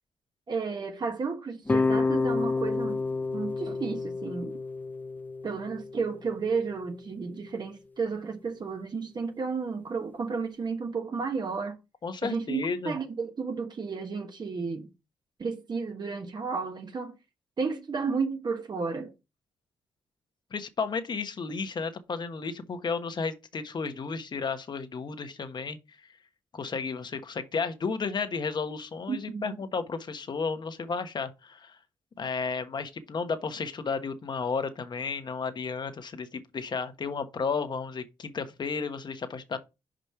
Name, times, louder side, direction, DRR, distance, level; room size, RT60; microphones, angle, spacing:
voice 1, 0.5-3.0 3.3-4.6 5.4-11.8 12.2-14.9 15.4-17.2 17.6-19.1 29.1-29.6, right 5 dB, 45° right, 1.3 m, -32 dB
sound 1, 1.7-6.8, left 3 dB, 20° left, 0.5 m, -30 dB
voice 2, 12.0-13.0 20.5-25.8 26.5-31.8 32.2-39.6, left 5 dB, 50° left, 1.2 m, -33 dB
5.3 x 5.0 x 4.6 m
cardioid pair, 65°, 10 cm